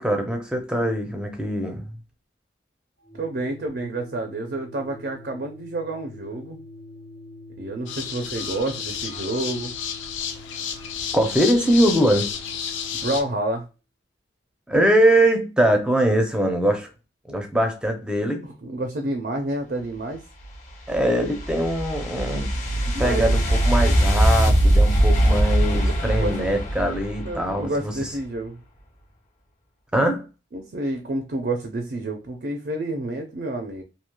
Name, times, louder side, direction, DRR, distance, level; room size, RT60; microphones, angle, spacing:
voice 1, 0.0-1.9 11.1-12.3 14.7-16.9 17.3-18.4 20.9-27.9 29.9-30.2, right 1 dB, 5° right, 4 dB, 0.5 m, -22 dB
Organ, 3.1-13.4, left 2 dB, 60° left, 0.9 m, -44 dB
voice 2, 3.1-6.6 7.6-9.7 12.9-13.7 18.4-20.2 22.9-23.4 25.7-26.5 27.2-28.6 30.5-33.8, right 2 dB, 55° right, 4 dB, 0.5 m, -29 dB
sound 1, 7.9-13.2, left 8 dB, 90° left, 0.5 m, -31 dB
sound 2, 20.4-27.7, right 1 dB, 40° left, 1.0 m, -21 dB
3.0 x 2.7 x 2.2 m, 0.31 s
head